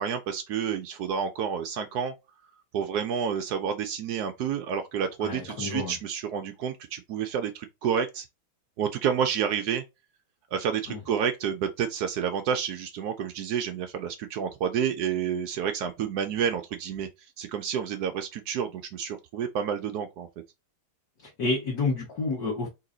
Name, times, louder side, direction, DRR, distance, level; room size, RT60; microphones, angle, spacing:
voice 1, 0.0-2.1 2.7-8.3 8.8-9.8 10.5-17.1 17.4-20.3, right 7 dB, 85° right, 0.8 m, -29 dB
voice 2, 5.2-5.9 10.9-11.0 21.4-22.7, left 3 dB, 50° left, 1.8 m, -29 dB
4.0 x 2.9 x 3.8 m
omnidirectional pair, 2.3 m